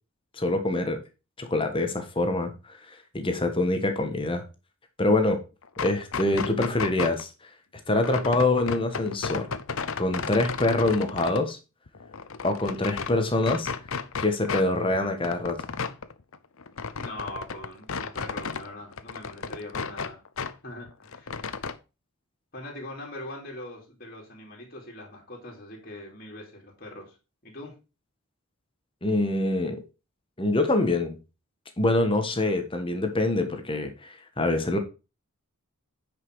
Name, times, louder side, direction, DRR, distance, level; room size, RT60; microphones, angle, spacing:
voice 1, 0.4-1.0 1.4-4.4 5.0-5.4 5.8-7.3 7.9-9.5 10.0-11.6 12.4-13.7 14.2-15.6 29.0-29.8 30.4-31.2 31.8-34.8, left 2 dB, 25° left, 1.2 m, -25 dB
sound 1, 5.6-7.2 7.9-11.4 11.9-13.1 13.4-14.7 14.9-18.7 18.9-20.5 20.8-21.7, left 5 dB, 65° left, 0.7 m, -33 dB
voice 2, 16.9-20.2 20.6-21.4 22.5-27.2 27.4-27.7, left 1 dB, 40° left, 3.1 m, -41 dB
9.5 x 5.3 x 4.8 m
head